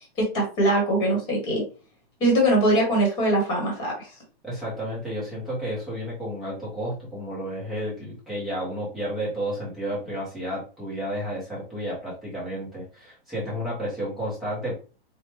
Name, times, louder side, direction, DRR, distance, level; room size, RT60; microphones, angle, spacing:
voice 1, 0.2-1.6 2.2-4.1, right 1 dB, 15° left, -1 dB, 1.1 m, -22 dB
voice 2, 4.4-14.8, equal, ahead, -8 dB, 0.5 m, -31 dB
4.2 x 2.1 x 3.1 m, 0.35 s
hypercardioid pair, 175°, 31 cm